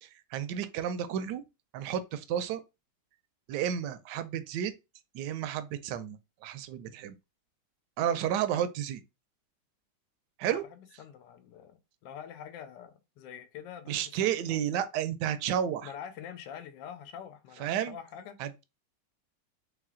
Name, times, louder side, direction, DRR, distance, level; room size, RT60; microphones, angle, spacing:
voice 1, 0.0-1.4 1.7-2.6 3.5-4.7 5.1-6.2 6.4-7.1 8.0-9.0 10.4-10.6 13.9-15.9 17.6-18.0 18.4-18.6, right 9 dB, 75° right, 1.1 m, -31 dB
voice 2, 10.4-14.9 15.8-18.4, left 8 dB, 80° left, 1.3 m, -46 dB
3.3 x 3.2 x 3.6 m
omnidirectional pair, 1.9 m